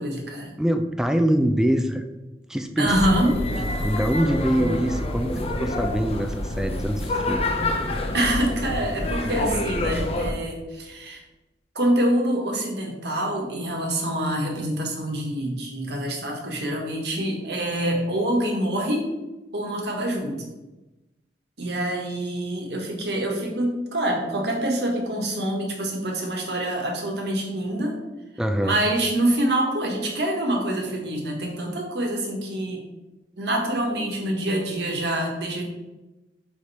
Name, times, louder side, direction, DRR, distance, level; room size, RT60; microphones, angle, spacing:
voice 1, 0.0-0.5 2.8-3.3 8.1-11.2 11.7-19.1 19.5-20.4 21.6-27.9 28.6-32.9 33.4-35.6, right 1 dB, 70° right, 1 dB, 1.4 m, -26 dB
voice 2, 0.6-2.0 2.5-2.9 3.6-7.4 28.4-28.8, equal, 5° right, 7 dB, 0.3 m, -24 dB
sound 1, 2.8-10.3, left 1 dB, 35° left, 0.6 m, -27 dB
5.1 x 5.0 x 4.1 m, 1.1 s
head